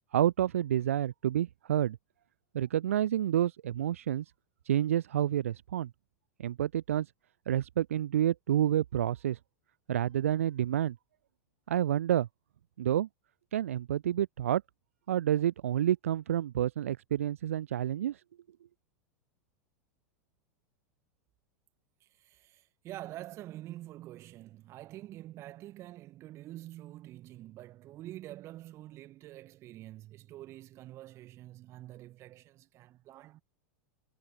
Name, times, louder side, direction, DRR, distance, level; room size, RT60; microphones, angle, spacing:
voice 1, 0.1-2.0 2.5-4.3 4.7-5.9 6.4-7.1 7.5-9.4 9.9-11.0 11.7-12.3 12.8-13.1 13.5-14.6 15.1-18.2, right 11 dB, 65° right, 0.4 m, -29 dB
voice 2, 22.0-33.4, right 15 dB, 35° right, 1.9 m, -47 dB
figure-of-eight pair, 90°, 8 cm